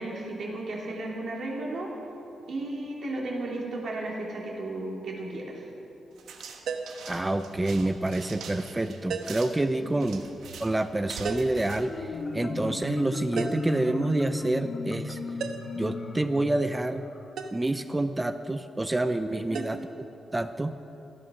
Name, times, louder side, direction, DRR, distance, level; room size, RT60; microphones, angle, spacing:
voice 1, 0.0-1.9 2.5-5.6 9.8-10.1 19.3-19.7, right 2 dB, 50° right, -3 dB, 3.2 m, -34 dB
sound 1, 6.2-12.7, right 5 dB, 85° right, 1.4 m, -45 dB
sound 2, 6.7-7.1 9.1-9.5 11.2-11.6 13.4-13.8 15.4-15.8 17.4-17.6 19.5-19.7, right 5 dB, 65° right, 1.1 m, -34 dB
voice 2, 7.1-10.2 10.6-15.2 15.7-17.0 17.5-19.8 20.3-20.8, right 2 dB, 10° right, 10 dB, 0.4 m, -28 dB
Marimba xylophone, 11.7-17.3, left 3 dB, 35° left, 1.1 m, -35 dB
16.5 x 13.0 x 6.4 m, 2.9 s
wide cardioid pair, 165°, 0 cm